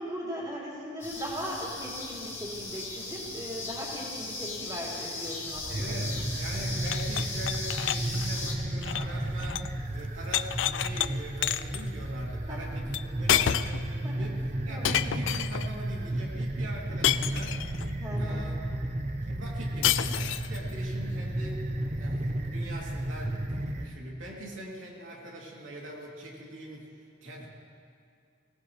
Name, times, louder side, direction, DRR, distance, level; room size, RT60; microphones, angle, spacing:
voice 1, 0.0-6.2 12.5-12.7 13.1-13.4 14.0-14.3 14.6-14.9 18.0-18.5, equal, 20° right, -5 dB, 3.5 m, -38 dB
sound 1, 1.0-8.5, left 2 dB, 15° left, 2.3 m, -37 dB
sound 2, 5.5-23.9, right 1 dB, 35° right, 1.0 m, -33 dB
voice 2, 5.7-17.6 18.2-18.8 19.2-21.7 22.0-27.5, right 1 dB, 90° right, -3 dB, 3.1 m, -43 dB
sound 3, 6.8-9.8 10.0-11.1 11.4-11.8 12.9-13.0 13.3-13.9 14.8-15.7 17.0-17.9 19.8-20.6, left 10 dB, 75° left, 0.4 m, -29 dB
24.5 x 17.5 x 3.4 m, 2.3 s
head